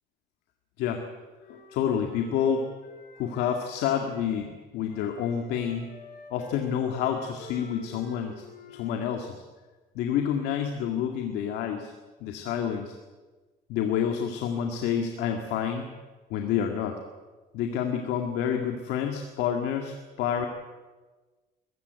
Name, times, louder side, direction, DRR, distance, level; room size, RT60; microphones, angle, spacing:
Wind instrument woodwind instrument, 0.9-4.5 4.9-9.0, left 4 dB, 65° left, 4.5 m, -49 dB
voice 1, 1.5-2.6 3.2-5.9 6.3-8.4 8.7-9.3 10.0-11.9 12.2-13.0 13.7-15.9 16.3-17.0 17.5-20.5, left 8 dB, 90° left, 4 dB, 2.0 m, -28 dB
21.5 x 15.0 x 9.5 m, 1.3 s
cardioid pair, 110°, 17 cm